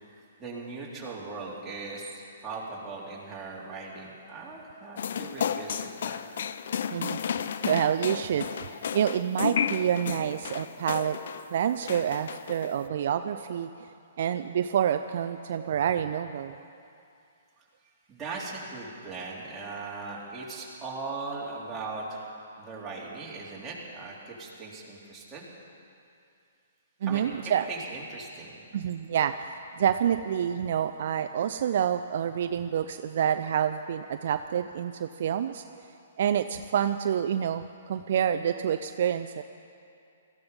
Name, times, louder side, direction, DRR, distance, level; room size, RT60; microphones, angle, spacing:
voice 1, 0.1-6.2 18.1-22.3 22.6-25.5 27.1-28.8, right 3 dB, 15° right, -5 dB, 3.2 m, -39 dB
sound 1, 5.0-11.5 11.8-12.8, left 8 dB, 65° left, 0.5 m, -33 dB
voice 2, 6.9-7.3 7.6-11.2 11.5-13.9 14.2-16.6 27.0-27.7 28.7-35.8 36.2-39.4, right 9 dB, 60° right, 8 dB, 0.5 m, -28 dB
18.0 x 14.0 x 5.3 m, 2.6 s
hypercardioid pair, 140°, 0 cm